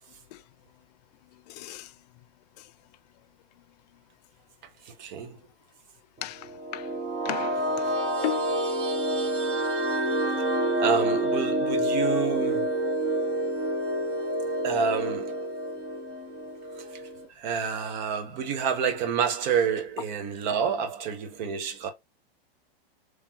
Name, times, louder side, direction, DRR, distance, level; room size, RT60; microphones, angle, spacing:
voice 1, 1.5-1.9 6.2-6.9 7.2-7.9 8.2-8.6, left 15 dB, 45° left, 0.4 m, -35 dB
voice 2, 4.9-5.4 10.8-12.8 14.6-15.5 16.9-17.0 17.4-21.9, right 6 dB, 45° right, 1.0 m, -28 dB
sound 1, 6.4-17.2, right 1 dB, 15° right, 0.9 m, -28 dB
3.6 x 3.2 x 2.8 m
supercardioid pair, 150°, 31 cm